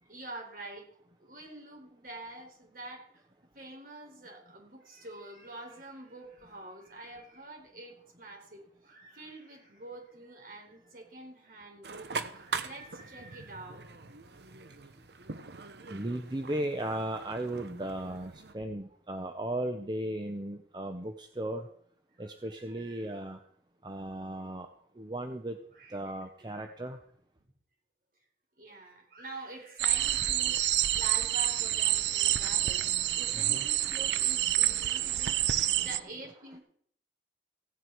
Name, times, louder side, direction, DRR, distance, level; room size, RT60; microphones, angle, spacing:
voice 1, 0.0-0.9 1.2-3.2 3.5-13.9 22.1-23.2 24.4-24.5 25.7-26.0 28.6-36.6, right 2 dB, 55° right, 1 dB, 4.0 m, -46 dB
sound 1, 11.8-18.5, right 4 dB, 70° right, 1.0 m, -42 dB
voice 2, 15.9-21.7 22.2-23.4 23.8-24.7 25.0-25.6 25.9-27.0 32.0-35.9, right 1 dB, 25° right, 5 dB, 0.8 m, -37 dB
sound 2, 29.8-36.0, right 13 dB, 90° right, 0.5 m, -28 dB
16.0 x 9.7 x 4.6 m, 0.63 s
head